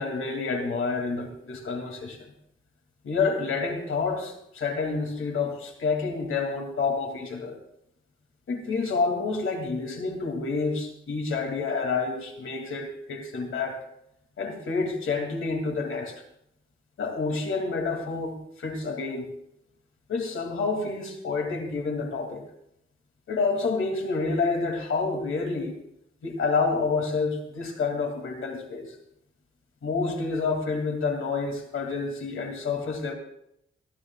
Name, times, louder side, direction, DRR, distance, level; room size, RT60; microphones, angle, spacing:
voice 1, 0.0-2.2 3.0-7.6 8.5-13.8 14.4-16.1 17.0-19.3 20.1-22.4 23.3-25.7 26.2-28.9 29.8-33.1, left 4 dB, 80° left, 3 dB, 2.7 m, -28 dB
23.0 x 15.5 x 2.4 m, 0.76 s
wide cardioid pair, 100°, 21 cm